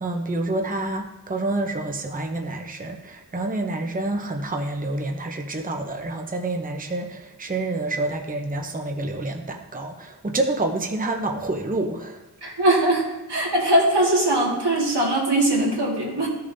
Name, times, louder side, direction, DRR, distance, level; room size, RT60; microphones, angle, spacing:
voice 1, 0.0-12.2, right 2 dB, 20° right, 3 dB, 0.7 m, -28 dB
voice 2, 12.4-13.0 13.3-16.3, right 1 dB, 80° right, -3 dB, 2.0 m, -21 dB
13.5 x 6.7 x 2.7 m, 1.0 s
wide cardioid pair, 45°, 40 cm